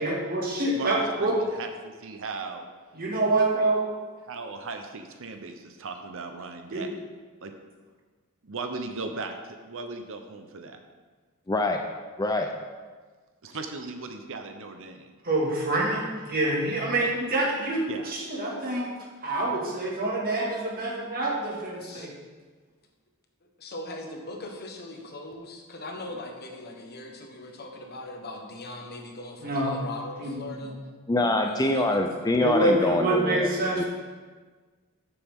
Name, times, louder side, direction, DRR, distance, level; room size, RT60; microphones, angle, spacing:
voice 1, 0.0-1.4 2.9-3.8 6.7-6.9 15.2-18.9 19.2-22.1 29.4-29.8 30.2-30.7 32.4-33.9, right 2 dB, 45° right, -2 dB, 2.0 m, -26 dB
voice 2, 0.7-2.7 4.2-6.9 7.4-7.5 8.4-10.8 13.4-15.1 17.9-18.1, right 3 dB, 65° right, 6 dB, 0.8 m, -37 dB
voice 3, 11.5-11.8 12.2-12.5 31.1-33.8, left 2 dB, 15° left, 4 dB, 0.5 m, -25 dB
voice 4, 21.8-22.1 23.6-30.7 31.4-32.0, left 2 dB, 45° left, 2 dB, 1.3 m, -40 dB
13.5 x 7.0 x 3.7 m, 1.4 s
head